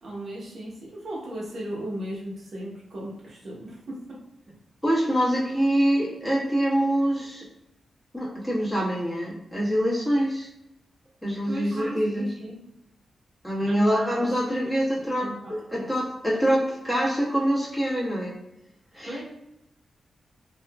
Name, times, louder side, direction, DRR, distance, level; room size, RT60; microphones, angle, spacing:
voice 1, 0.0-4.5 11.5-12.6 13.6-13.9 14.6-14.7 15.2-15.9 19.0-19.2, right 1 dB, 55° right, -4 dB, 0.9 m, -37 dB
voice 2, 4.8-7.4 8.1-10.5 11.2-12.3 13.4-18.3 18.9-19.2, equal, 10° left, -7 dB, 1.3 m, -25 dB
2.8 x 2.4 x 2.2 m, 0.86 s
cardioid pair, 60°, 0 cm